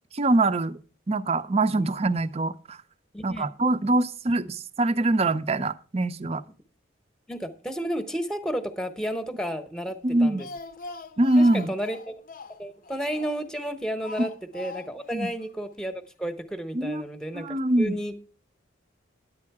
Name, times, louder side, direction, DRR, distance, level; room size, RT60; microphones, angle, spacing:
voice 1, 0.1-0.8 1.1-2.8 3.2-6.4 10.0-10.4 11.2-11.7 14.2-14.3 15.1-15.3 16.7-17.0 17.3-17.9, right 2 dB, 30° right, 0.5 m, -23 dB
voice 2, 3.1-3.5 7.3-10.5 11.4-12.0 12.6-18.1, equal, 5° left, 0.9 m, -32 dB
Speech, 10.1-13.6 14.0-15.2 15.4-15.5 15.8-15.9, left 3 dB, 45° left, 0.6 m, -42 dB
10.5 x 8.5 x 4.7 m
head